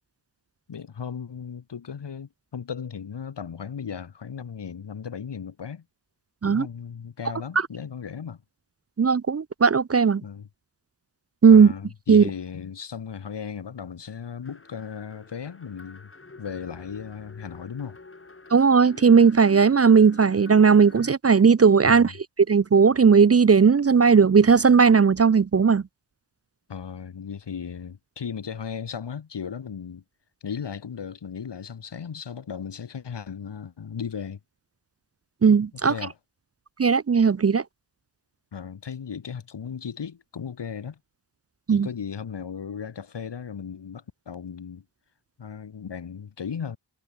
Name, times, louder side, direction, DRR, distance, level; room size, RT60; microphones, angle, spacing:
voice 1, 0.7-5.8 6.4-8.4 10.2-10.5 11.5-16.1 16.4-18.0 21.8-22.1 26.7-30.0 30.4-34.4 35.9-36.1 38.5-41.0 41.7-44.8 45.4-46.8, left 7 dB, 70° left, 2.0 m, -36 dB
voice 2, 9.0-10.2 11.4-11.7 12.1-12.2 18.5-22.1 22.5-25.8 35.4-35.9 36.8-37.6 41.7-41.9, right 5 dB, 35° right, 0.6 m, -17 dB
sound 1, 14.4-21.1, left 3 dB, 30° left, 3.5 m, -47 dB
wide cardioid pair, 130°, 44 cm